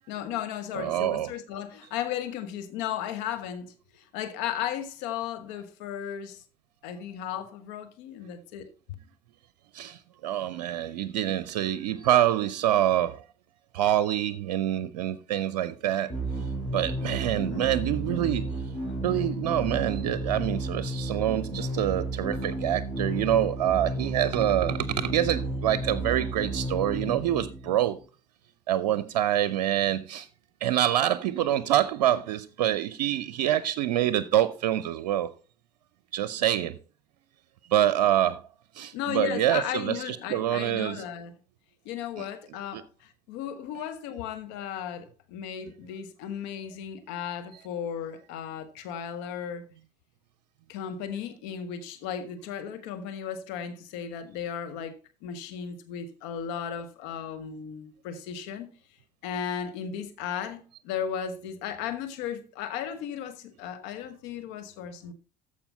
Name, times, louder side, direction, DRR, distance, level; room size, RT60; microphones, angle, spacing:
voice 1, 0.1-6.4 6.8-8.7 17.3-17.4 38.9-41.4 41.8-49.6 50.7-58.7 59.2-65.1, left 9 dB, 60° left, 1.2 m, -35 dB
voice 2, 0.7-1.3 9.7-13.2 13.7-16.1 16.7-18.5 19.0-28.0 28.7-30.3 30.6-35.3 36.1-36.8 37.7-38.4 38.7-41.0 42.2-42.3 42.7-42.8, right 12 dB, 70° right, 0.6 m, -26 dB
sound 1, 16.1-28.0, right 1 dB, 10° left, 5.0 m, -32 dB
14.0 x 5.1 x 4.0 m
figure-of-eight pair, 60°, 21 cm